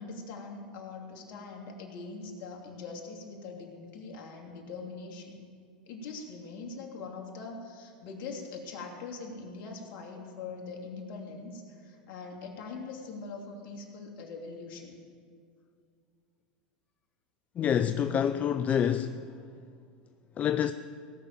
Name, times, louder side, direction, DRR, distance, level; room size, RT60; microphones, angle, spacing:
voice 1, 0.0-5.4 5.9-14.9, left 4 dB, 50° left, 2.9 m, -42 dB
voice 2, 17.6-19.2 20.4-20.7, left 9 dB, 30° left, 0.5 m, -27 dB
17.5 x 6.7 x 8.9 m
hypercardioid pair, 100°, 5 cm